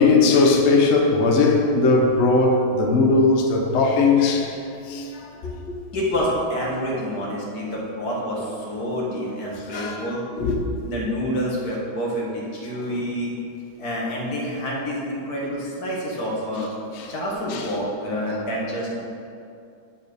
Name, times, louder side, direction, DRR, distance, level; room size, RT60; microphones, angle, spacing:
voice 1, 0.0-4.6 4.9-5.8 9.7-10.1 10.4-10.6 17.0-17.1 17.5-17.6, left 3 dB, 80° left, 2 dB, 0.6 m, -19 dB
voice 2, 5.9-10.2 10.8-13.3 13.8-16.7 17.1-19.0, equal, 50° left, -3 dB, 2.0 m, -27 dB
8.6 x 4.4 x 6.8 m, 2.5 s
omnidirectional pair, 2.3 m